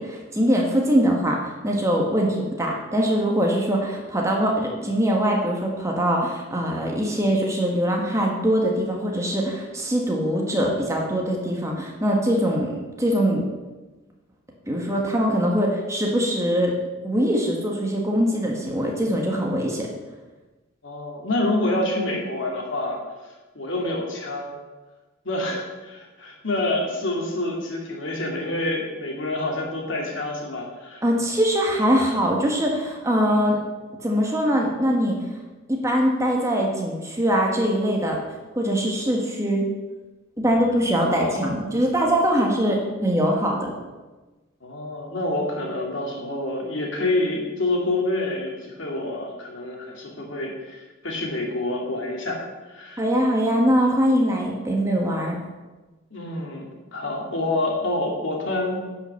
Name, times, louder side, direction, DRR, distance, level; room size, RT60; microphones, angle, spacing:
voice 1, 0.0-13.4 14.7-16.7 17.0-19.9 31.0-33.6 34.0-35.1 35.7-38.2 38.5-39.7 40.4-43.7 53.0-55.4, equal, 15° right, -1 dB, 1.5 m, -22 dB
voice 2, 20.8-23.0 23.5-24.6 25.2-31.0 41.0-41.5 44.6-52.4 52.7-53.0 56.1-58.8, left 2 dB, 65° left, 0 dB, 2.4 m, -27 dB
10.5 x 5.8 x 7.0 m, 1.2 s
head